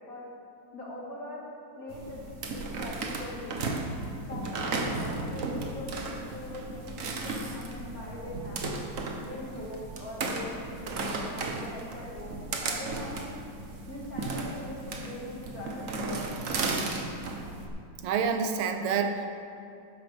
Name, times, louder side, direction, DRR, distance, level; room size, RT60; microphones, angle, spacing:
voice 1, 0.7-1.5 1.8-2.2 2.5-3.9 4.3-8.7 9.2-13.3 13.9-16.2, left 2 dB, 40° left, -5 dB, 2.2 m, -42 dB
sound 1, 1.9-17.7, right 3 dB, 50° right, 1.0 m, -35 dB
voice 2, 18.0-19.3, right 6 dB, 90° right, 6 dB, 1.7 m, -27 dB
12.5 x 10.0 x 3.5 m, 2.5 s
omnidirectional pair, 2.4 m